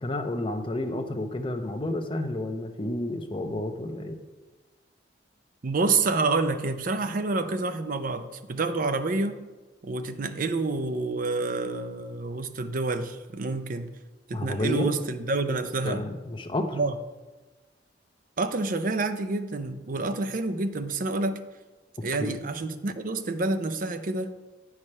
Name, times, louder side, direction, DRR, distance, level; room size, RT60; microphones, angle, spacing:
voice 1, 0.0-4.2 14.3-14.9 15.8-16.8 22.2-22.4, left 1 dB, 25° left, 5 dB, 0.6 m, -30 dB
voice 2, 5.6-9.4 9.8-13.9 14.3-16.1 16.7-17.0 18.4-21.4 22.0-24.3, right 3 dB, 45° right, 10 dB, 0.5 m, -28 dB
8.6 x 4.7 x 5.4 m, 1.2 s
head